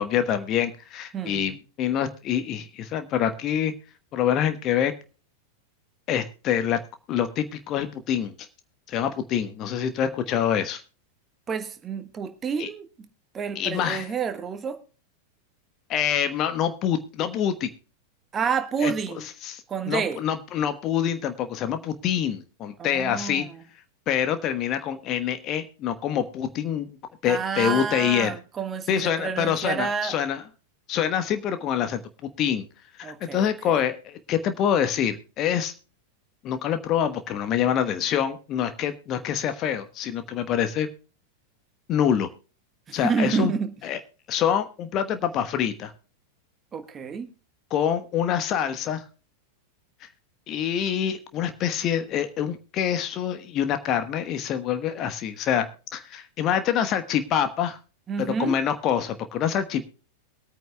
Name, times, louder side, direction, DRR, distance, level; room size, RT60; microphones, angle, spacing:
voice 1, 0.0-3.7 4.1-4.9 6.1-6.8 7.1-8.5 8.9-10.8 12.6-12.7 13.5-14.1 15.9-17.7 18.8-18.9 19.4-23.5 24.1-27.0 27.2-28.3 28.9-30.4 30.9-32.6 33.0-35.7 36.4-40.9 41.9-42.3 42.9-43.5 43.8-44.0 44.3-45.9 47.7-49.0 50.0-50.1 50.5-55.7 55.9-57.8 58.2-59.9, left 9 dB, 35° left, 9 dB, 1.2 m, -26 dB
voice 2, 1.1-1.6 11.5-12.9 13.3-14.8 18.3-19.3 19.7-20.2 22.8-23.5 27.2-30.2 33.0-33.8 42.9-43.7 46.7-47.3 58.1-58.5, right 6 dB, 20° right, 9 dB, 1.4 m, -29 dB
22.5 x 9.2 x 2.2 m, 0.35 s
figure-of-eight pair, 90°, 0 cm